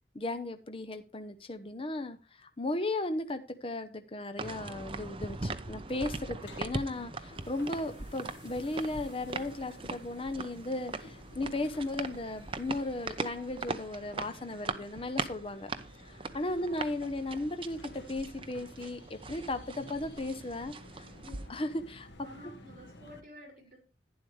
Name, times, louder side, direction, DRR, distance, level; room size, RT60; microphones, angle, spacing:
voice 1, 0.1-15.7 16.0-21.1 21.5-22.1, left 2 dB, 30° left, 8 dB, 0.8 m, -36 dB
sound 1, 4.4-21.5, right 3 dB, 30° right, 0.8 m, -41 dB
sound 2, 5.6-23.2, left 1 dB, 70° left, 1.7 m, -54 dB
voice 2, 21.1-21.5 22.2-23.8, left 1 dB, 45° right, 3 dB, 4.7 m, -51 dB
11.5 x 10.5 x 3.3 m, 0.33 s
head